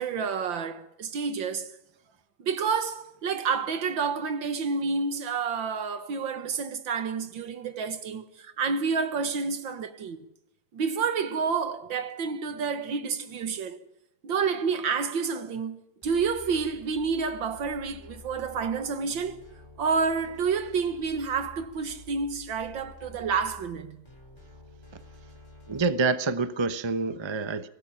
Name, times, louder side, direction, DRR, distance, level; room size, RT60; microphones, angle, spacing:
voice 1, 0.0-1.7 2.4-8.3 8.6-10.2 10.7-13.8 14.2-19.4 19.8-24.0, right 5 dB, 75° right, 2.2 m, -29 dB
sound 1, 16.0-25.9, left 3 dB, 15° left, 4.5 m, -50 dB
voice 2, 25.7-27.7, right 4 dB, 25° right, 0.6 m, -27 dB
24.0 x 19.0 x 5.8 m
omnidirectional pair, 2.1 m